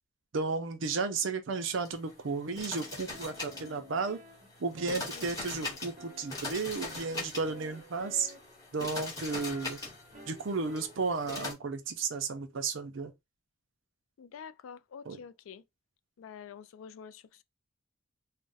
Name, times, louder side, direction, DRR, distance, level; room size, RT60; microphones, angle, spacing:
voice 1, 0.3-4.2 4.6-8.3 8.7-9.8 10.3-13.1 15.1-15.2, right 4 dB, 70° right, 0.5 m, -33 dB
sound 1, 1.6-11.5, left 2 dB, 15° left, 1.0 m, -42 dB
sound 2, 2.3-11.5, equal, 40° right, 0.9 m, -52 dB
voice 2, 14.2-15.6 16.2-17.4, left 7 dB, 80° left, 0.3 m, -48 dB
2.5 x 2.1 x 3.8 m
head